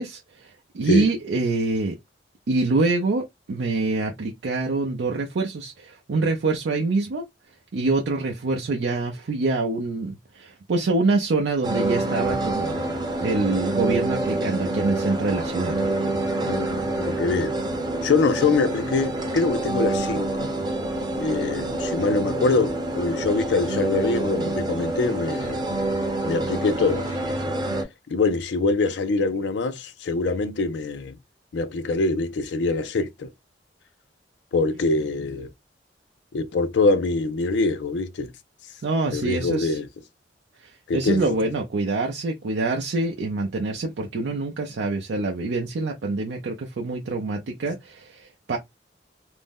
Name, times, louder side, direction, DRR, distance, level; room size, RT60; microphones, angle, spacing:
voice 1, 0.0-2.0 2.5-7.2 7.7-12.9 13.2-15.8 38.8-39.8 40.6-48.6, right 3 dB, 75° right, 0.5 m, -25 dB
sound 1, 11.6-27.8, right 2 dB, 25° right, 0.6 m, -27 dB
voice 2, 16.5-17.5 18.0-20.5 21.2-25.6 26.2-27.1 28.1-31.2 31.5-33.3 34.5-35.5 36.3-38.3 39.1-39.9 40.9-41.4, left 3 dB, 75° left, 0.4 m, -24 dB
2.5 x 2.0 x 3.4 m
head